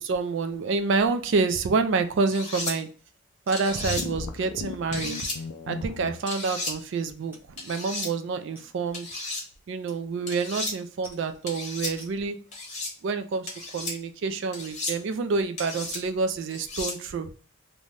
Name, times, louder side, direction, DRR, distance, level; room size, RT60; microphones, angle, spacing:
voice 1, 0.0-2.9 3.5-5.2 5.7-9.1 9.7-12.4 13.0-13.5 13.7-17.3, right 4 dB, 55° right, 9 dB, 0.3 m, -28 dB
sound 1, 2.3-2.7 3.5-4.0 4.9-5.4 6.3-6.7 7.6-8.1 8.9-9.4 10.3-10.7 11.5-11.9 12.5-12.9 13.5-13.9 14.5-15.0 15.6-16.0 16.5-17.0, left 2 dB, 30° left, 0.9 m, -33 dB
sound 2, 2.7-2.9 3.5-3.7 4.5-4.6 5.2-5.3 6.3-6.4 6.7-6.8 7.3-7.5 7.9-8.0 8.6-9.0 9.9-10.0 10.3-10.6 11.0-11.4 12.0-12.2, equal, 10° right, 0.6 m, -51 dB
sound 3, 3.7-6.1, left 5 dB, 90° left, 0.4 m, -36 dB
2.6 x 2.2 x 3.1 m, 0.41 s
head